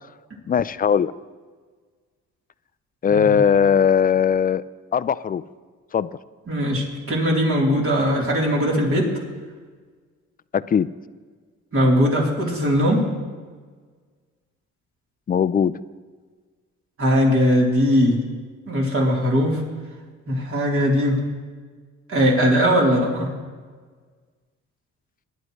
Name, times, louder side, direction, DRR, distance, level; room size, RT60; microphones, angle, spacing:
voice 1, 0.5-1.1 3.0-4.6 4.9-5.4 5.9-6.1 10.5-10.9 15.3-15.7, left 7 dB, 30° left, 16 dB, 0.4 m, -19 dB
voice 2, 3.1-3.4 6.5-9.1 11.7-13.1 17.0-18.2 18.7-19.6 20.3-21.2 22.1-23.3, equal, 45° right, -3 dB, 3.6 m, -20 dB
19.5 x 11.0 x 3.2 m, 1.5 s
cardioid pair, 90°, 30 cm